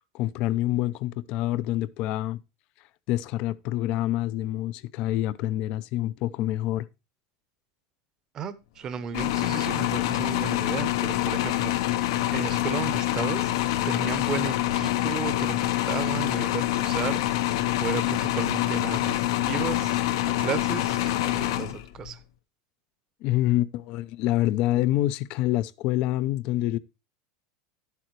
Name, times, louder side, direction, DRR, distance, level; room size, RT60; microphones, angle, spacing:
voice 1, 0.1-2.4 3.1-6.9 23.2-26.8, left 15 dB, 40° left, 0.5 m, -26 dB
voice 2, 8.3-12.0 12.3-13.5 13.8-17.2 17.8-22.2, right 7 dB, 25° right, 0.8 m, -34 dB
sound 1, 9.1-22.1, left 14 dB, 65° left, 0.8 m, -26 dB
11.0 x 8.3 x 3.1 m
supercardioid pair, 165°, 2 cm